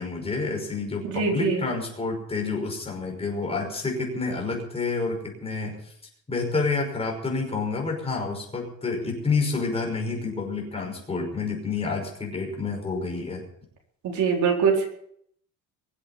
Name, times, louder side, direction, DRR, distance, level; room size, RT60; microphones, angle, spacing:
voice 1, 0.0-5.9 6.3-13.4, left 4 dB, 20° left, 1 dB, 5.5 m, -29 dB
voice 2, 1.0-1.6 14.0-14.8, right 5 dB, 60° right, 1 dB, 4.5 m, -23 dB
23.0 x 8.3 x 7.0 m, 0.66 s
cardioid pair, 160°, 33 cm